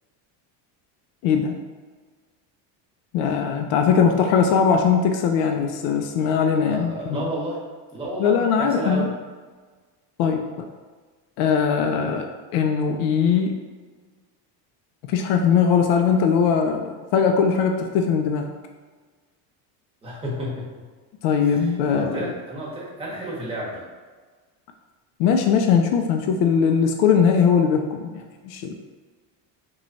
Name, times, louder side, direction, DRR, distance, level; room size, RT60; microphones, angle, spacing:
voice 1, 1.2-1.6 3.1-7.3 8.2-9.1 10.2-10.7 11.4-13.6 15.1-18.5 21.2-22.3 25.2-28.7, left 6 dB, 75° left, 4 dB, 0.5 m, -20 dB
voice 2, 6.7-7.6 7.9-9.1 20.0-20.8 21.4-23.8, equal, 10° right, -5 dB, 0.9 m, -31 dB
3.1 x 2.3 x 3.8 m, 1.4 s
cardioid pair, 135°, 46 cm